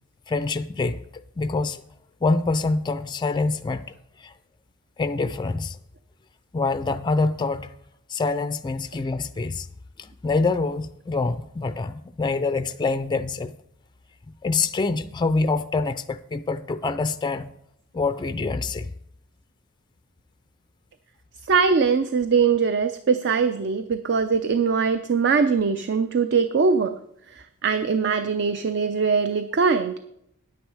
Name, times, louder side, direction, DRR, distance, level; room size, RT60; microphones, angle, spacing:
voice 1, 0.3-1.1 1.4-1.8 2.2-3.9 4.2-4.3 5.0-5.8 6.5-7.7 8.1-9.7 10.0-13.5 14.4-17.5 17.9-18.9, left 3 dB, 20° left, 0.4 m, -25 dB
voice 2, 21.5-26.9 27.6-30.0, right 5 dB, 50° right, 0.5 m, -21 dB
10.0 x 9.3 x 4.8 m
head